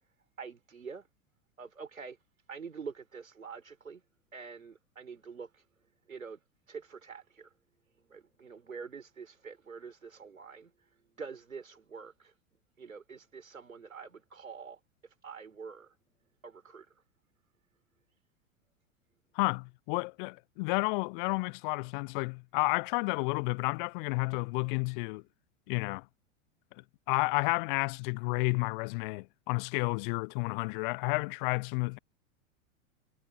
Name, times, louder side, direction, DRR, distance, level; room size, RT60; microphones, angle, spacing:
voice 1, 0.4-1.1 1.6-2.2 2.5-4.0 4.3-5.6 6.1-6.4 6.7-7.5 8.0-10.7 11.0-12.3 12.8-14.8 15.2-15.9 16.4-16.9, right 5 dB, 85° right, 4.5 m, -46 dB
voice 2, 19.3-25.2 25.7-26.1 27.1-32.0, left 30 dB, 40° left, 0.5 m, -31 dB
figure-of-eight pair, 95°, 40 cm